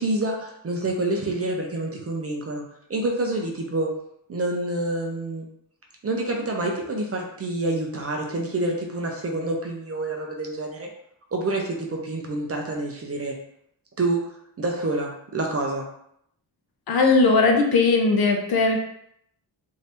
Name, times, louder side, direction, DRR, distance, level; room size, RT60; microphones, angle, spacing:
voice 1, 0.0-2.6 2.9-3.9 4.3-5.5 6.0-10.9 11.3-13.4 14.0-14.2 14.6-15.9, right 2 dB, 35° right, 0 dB, 0.5 m, -27 dB
voice 2, 16.9-18.8, left 3 dB, 55° left, 2 dB, 0.6 m, -19 dB
2.7 x 2.7 x 3.3 m, 0.72 s
wide cardioid pair, 165°, 45 cm